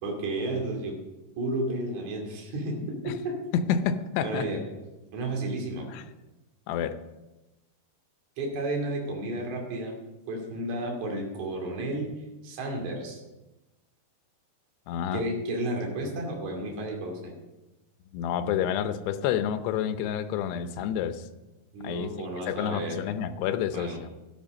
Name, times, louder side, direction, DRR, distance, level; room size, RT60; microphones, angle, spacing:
voice 1, 0.0-1.0 1.4-3.4 4.2-4.6 5.1-5.9 8.4-10.0 10.3-12.1 12.4-13.2 15.1-17.3 21.7-23.0 23.7-24.0, right 2 dB, 50° right, 0 dB, 3.5 m, -32 dB
voice 2, 3.5-4.5 5.9-6.0 6.7-7.0 14.9-15.2 18.1-21.2 21.8-24.1, left 8 dB, 85° left, 10 dB, 2.9 m, -29 dB
13.0 x 10.5 x 5.3 m, 1.0 s
omnidirectional pair, 4.7 m